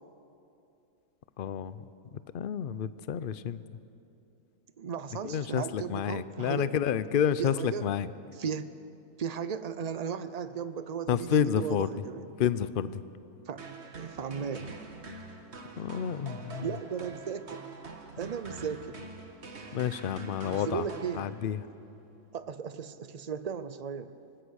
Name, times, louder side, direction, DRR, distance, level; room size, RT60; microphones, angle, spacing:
voice 1, 1.4-1.8 2.3-3.6 5.2-8.1 11.1-11.9 12.4-13.0 15.8-16.7 19.7-20.9 21.1-21.6, left 8 dB, 55° left, 15 dB, 0.6 m, -29 dB
voice 2, 4.8-6.7 7.4-7.9 8.4-8.8 9.2-12.3 13.5-13.6 14.0-14.7 16.6-17.6 18.2-19.0 20.5-21.3 22.3-24.2, right 7 dB, 65° right, 12 dB, 0.4 m, -36 dB
sound 1, 13.6-21.7, right 3 dB, 45° right, 1.9 m, -45 dB
25.0 x 20.0 x 6.4 m, 2.8 s
omnidirectional pair, 1.6 m